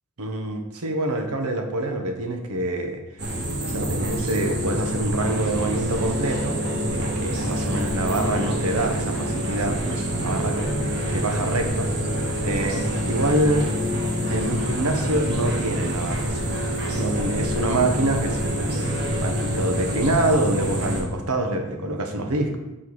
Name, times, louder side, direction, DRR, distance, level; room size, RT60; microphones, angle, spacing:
voice 1, 0.2-3.0 3.6-6.6 6.8-10.7 11.1-11.9 12.4-13.7 14.3-16.5 16.9-22.6, right 1 dB, 80° right, 4 dB, 1.0 m, -26 dB
sound 1, 3.2-21.0, equal, 50° right, 1.4 m, -26 dB
7.3 x 4.5 x 4.7 m, 1.0 s
head